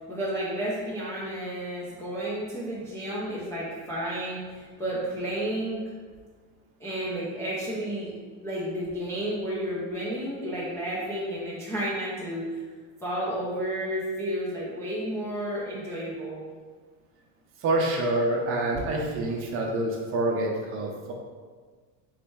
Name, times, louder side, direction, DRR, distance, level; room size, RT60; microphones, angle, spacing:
voice 1, 0.1-5.8 6.8-8.2 8.4-12.6 13.0-16.5, right 1 dB, 10° left, -10 dB, 0.3 m, -31 dB
voice 2, 17.6-21.1, right 1 dB, 35° right, 0 dB, 0.6 m, -27 dB
3.2 x 3.2 x 4.5 m, 1.5 s
cardioid pair, 165°, 39 cm